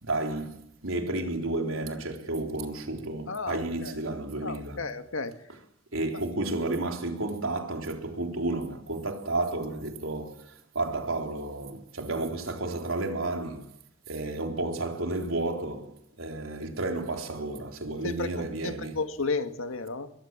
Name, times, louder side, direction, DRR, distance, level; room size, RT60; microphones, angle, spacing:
voice 1, 0.0-4.8 5.9-13.7 14.1-19.0, right 2 dB, 85° right, 3.8 m, -32 dB
voice 2, 3.3-4.0 4.4-5.3 18.0-20.1, left 4 dB, 90° left, 2.0 m, -33 dB
23.5 x 21.5 x 7.5 m
head